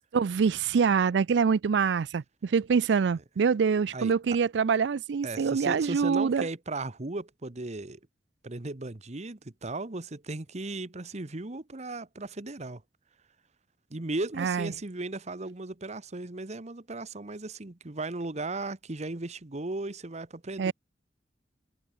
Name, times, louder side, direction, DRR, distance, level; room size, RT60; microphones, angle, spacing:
voice 1, 0.1-6.5 14.4-14.7 20.6-20.7, right 6 dB, 75° right, 0.4 m, -25 dB
voice 2, 5.2-8.0 8.4-12.8 13.9-20.7, right 2 dB, 40° right, 1.2 m, -36 dB
head